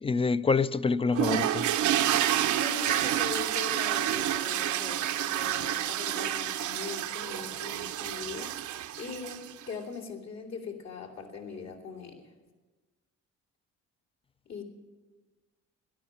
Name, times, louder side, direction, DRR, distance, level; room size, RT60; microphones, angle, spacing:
voice 1, 0.0-1.7, left 4 dB, 20° left, 0.4 m, -26 dB
sound 1, 1.2-9.6, right 12 dB, 75° right, 0.7 m, -29 dB
voice 2, 2.5-12.3 14.5-14.6, left 5 dB, 65° left, 2.8 m, -41 dB
13.0 x 11.0 x 7.3 m
cardioid pair, 90°, 30 cm